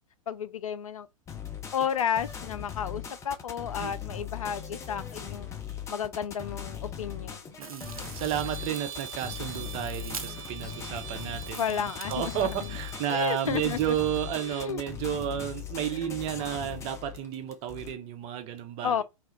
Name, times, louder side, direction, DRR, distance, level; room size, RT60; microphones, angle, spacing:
voice 1, 0.3-1.1 1.7-5.5 5.9-7.6 11.6-12.8 13.1-13.8 14.5-14.8 18.8-19.0, left 8 dB, 75° left, 0.4 m, -32 dB
sound 1, 1.3-17.9, left 8 dB, 15° left, 0.5 m, -40 dB
voice 2, 7.6-19.0, right 10 dB, 35° right, 0.6 m, -32 dB
sound 2, 7.6-14.2, right 5 dB, 85° right, 0.5 m, -45 dB
Trumpet, 8.2-14.7, right 8 dB, 65° right, 0.8 m, -44 dB
2.8 x 2.3 x 3.1 m
figure-of-eight pair, 100°, 18 cm